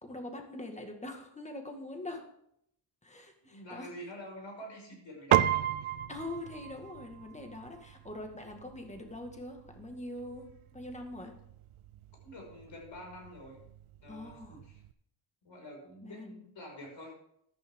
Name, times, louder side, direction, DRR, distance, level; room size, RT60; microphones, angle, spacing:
voice 1, 0.0-2.2 3.0-3.9 6.1-11.3 14.1-14.6 16.0-16.5, left 1 dB, 15° left, 4 dB, 1.8 m, -43 dB
voice 2, 3.4-5.9 12.2-13.6 14.0-14.8 15.4-17.1, equal, 65° left, 0 dB, 5.6 m, -47 dB
Piano, 5.3-14.9, right 12 dB, 85° right, 0.6 m, -35 dB
14.0 x 11.5 x 3.7 m, 0.72 s
wide cardioid pair, 140°, 49 cm